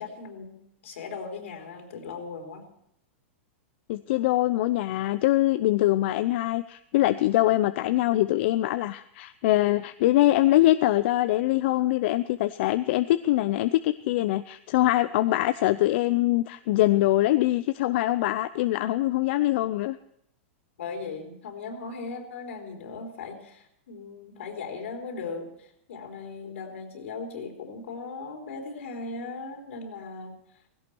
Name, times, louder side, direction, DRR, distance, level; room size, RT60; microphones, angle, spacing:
voice 1, 0.0-2.7 20.8-30.4, left 4 dB, 80° left, 3 dB, 3.9 m, -38 dB
voice 2, 3.9-20.0, left 16 dB, 55° left, 12 dB, 0.6 m, -23 dB
17.0 x 16.5 x 4.6 m, 0.73 s
hypercardioid pair, 140°, 7 cm